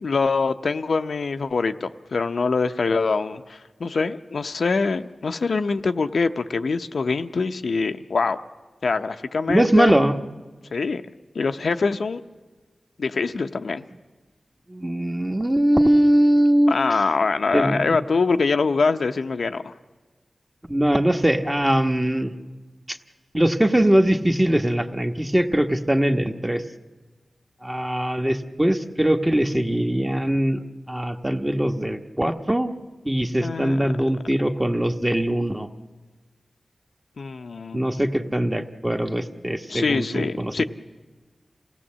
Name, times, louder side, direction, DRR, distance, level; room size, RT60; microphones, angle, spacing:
voice 1, 0.0-8.4 8.8-9.9 10.7-11.0 11.3-12.2 13.0-13.8 16.7-19.7 33.4-33.8 37.2-38.1 39.7-40.6, left 4 dB, 80° left, 8 dB, 0.7 m, -24 dB
voice 2, 9.5-10.2 14.7-16.8 17.5-17.8 20.7-22.3 22.9-23.0 23.3-26.6 27.6-32.7 33.0-35.7 37.7-40.6, right 1 dB, 15° right, 5 dB, 1.2 m, -21 dB
27.5 x 17.0 x 7.5 m, 1.3 s
wide cardioid pair, 80°, 0 cm